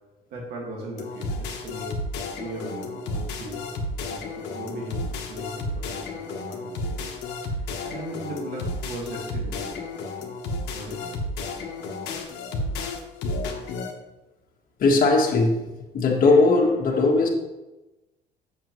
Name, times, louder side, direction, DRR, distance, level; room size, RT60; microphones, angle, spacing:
voice 1, 0.3-1.9 2.4-3.7 4.1-7.6 7.8-9.8 10.7-11.2 13.3-13.6, right 2 dB, 75° right, -2 dB, 1.9 m, -38 dB
sound 1, 1.0-13.9, left 2 dB, 90° left, 1.2 m, -32 dB
voice 2, 14.8-15.6 15.9-17.3, left 3 dB, 55° left, 1 dB, 1.5 m, -19 dB
7.3 x 6.7 x 3.1 m, 1.0 s
cardioid pair, 110°, 17 cm